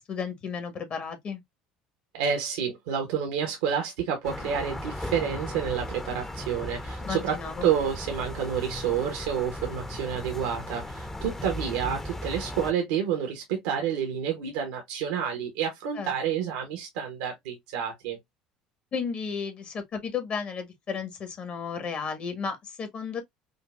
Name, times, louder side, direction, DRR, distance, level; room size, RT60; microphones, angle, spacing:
voice 1, 0.0-1.4 7.0-7.7 15.9-16.1 18.9-23.2, left 6 dB, 45° left, 1.5 m, -33 dB
voice 2, 2.1-7.4 7.6-18.2, right 8 dB, 80° right, 1.0 m, -29 dB
sound 1, 4.2-12.7, left 1 dB, 15° left, 0.8 m, -37 dB
5.1 x 2.4 x 2.4 m
hypercardioid pair, 80°, 3 cm